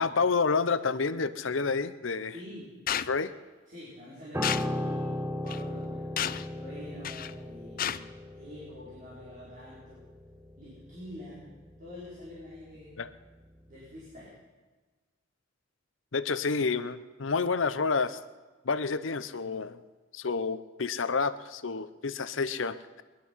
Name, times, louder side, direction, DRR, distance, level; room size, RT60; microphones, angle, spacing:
voice 1, 0.0-2.3 3.1-3.3 13.0-13.1 16.1-18.2 18.6-19.8 20.1-23.0, left 4 dB, 85° left, 13 dB, 0.8 m, -29 dB
voice 2, 2.3-2.7 3.7-6.1 6.5-8.1 8.3-10.0 10.6-11.5 11.8-13.0 13.7-14.3, equal, 45° right, -8 dB, 5.3 m, -46 dB
sound 1, 2.9-3.1 4.4-4.7 5.5-5.6 6.2-6.5 7.0-7.3 7.8-8.0, left 10 dB, 50° left, 0.5 m, -31 dB
Piano, 4.3-13.7 14.0-14.3, left 1 dB, 15° right, 0.8 m, -37 dB
21.5 x 11.5 x 5.7 m, 1.3 s
head